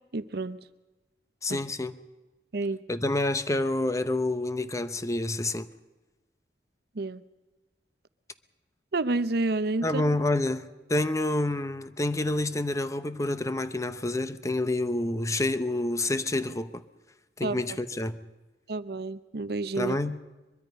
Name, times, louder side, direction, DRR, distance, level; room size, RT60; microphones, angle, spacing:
voice 1, 0.1-0.6 1.5-1.6 2.5-2.8 7.0-7.2 8.9-10.0 17.4-17.6 18.7-20.0, right 2 dB, 65° right, 0.7 m, -29 dB
voice 2, 1.4-1.9 2.9-5.7 9.8-16.8 17.4-18.2 19.8-20.2, left 2 dB, 20° left, 0.8 m, -28 dB
23.0 x 22.5 x 5.4 m
head